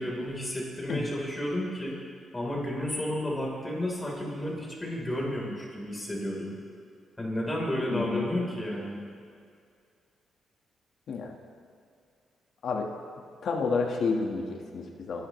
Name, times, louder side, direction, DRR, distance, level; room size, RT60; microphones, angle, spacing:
voice 1, 0.0-2.0 2.3-6.6 7.2-9.0, left 1 dB, 15° left, -3 dB, 3.9 m, -32 dB
voice 2, 7.9-8.2 11.1-11.3 12.6-12.9 13.4-15.3, left 4 dB, 65° left, 2 dB, 1.5 m, -30 dB
27.0 x 11.5 x 3.2 m, 2.3 s
cardioid pair, 95°, 0 cm